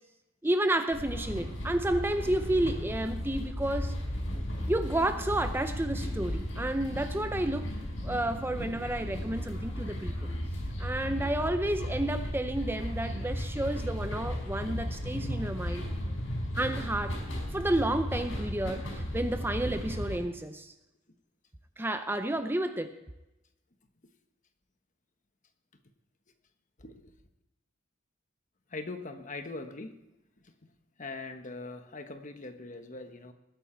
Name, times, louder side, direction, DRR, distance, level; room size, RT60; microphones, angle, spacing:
voice 1, 0.4-3.9 4.7-7.7 8.0-10.3 10.8-15.8 16.5-17.3 17.5-20.7 21.8-23.0, right 1 dB, 10° right, 8 dB, 0.6 m, -31 dB
sound 1, 0.9-20.2, equal, 80° left, 4.9 m, -35 dB
voice 2, 26.8-27.1 28.7-30.0 30.4-30.5 31.0-33.3, left 3 dB, 40° left, 7 dB, 1.2 m, -41 dB
20.0 x 8.9 x 4.5 m, 0.94 s
head